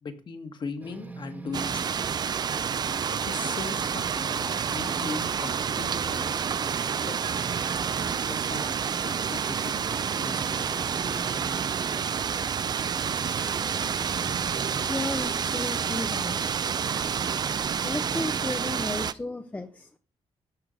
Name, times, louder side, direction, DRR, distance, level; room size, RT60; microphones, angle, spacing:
voice 1, 0.0-2.0 2.8-6.4 6.7-7.2 8.3-8.7 9.0-9.9 10.2-11.5 11.8-12.1, left 4 dB, 40° left, 8 dB, 1.5 m, -39 dB
sound 1, 0.8-2.4 2.8-3.0 3.3-6.1 6.4-6.5 6.9-8.8 9.3-9.4 9.8-12.2 13.5-15.4 16.7-19.1, right 3 dB, 15° right, 1.0 m, -43 dB
sound 2, 1.5-19.1, right 7 dB, 35° right, 0.4 m, -29 dB
Piano, 7.2-9.2 10.5-10.6, right 6 dB, 75° right, 1.5 m, -50 dB
voice 2, 14.8-16.6 17.5-20.0, left 2 dB, 10° left, 8 dB, 0.6 m, -34 dB
13.0 x 6.3 x 5.3 m, 0.38 s
wide cardioid pair, 160°, 12 cm